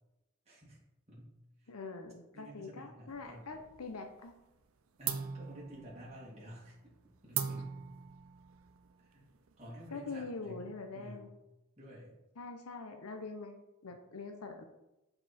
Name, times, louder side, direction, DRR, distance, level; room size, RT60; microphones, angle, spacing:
voice 1, 0.5-0.8 1.1-1.3 1.6-1.7 2.3-3.6 5.0-6.8 7.2-7.8 9.0-9.2 9.6-10.6 10.9-11.4 11.8-12.1, equal, 30° right, -5 dB, 1.8 m, -50 dB
voice 2, 1.7-4.3 9.9-11.3 12.4-13.6 13.8-14.7, left 3 dB, 85° left, 6 dB, 0.8 m, -44 dB
sound 1, 3.1-4.0 4.3-4.7 5.0-10.2, right 8 dB, 70° right, 0.6 m, -41 dB
7.7 x 4.9 x 4.3 m, 0.95 s
head